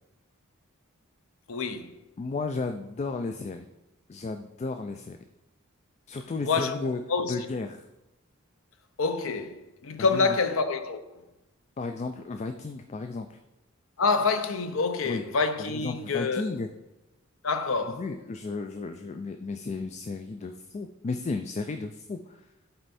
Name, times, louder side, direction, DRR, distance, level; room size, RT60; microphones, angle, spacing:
voice 1, 1.5-2.0 6.4-7.3 9.0-11.0 14.0-16.5 17.4-18.0, left 4 dB, 65° left, 0.6 m, -27 dB
voice 2, 2.2-3.6 4.1-5.2 6.1-7.0 7.3-7.9 10.0-10.4 11.8-13.4 15.0-15.2 15.6-16.7 17.9-22.4, left 3 dB, 30° left, 0.3 m, -34 dB
7.8 x 4.3 x 4.2 m
head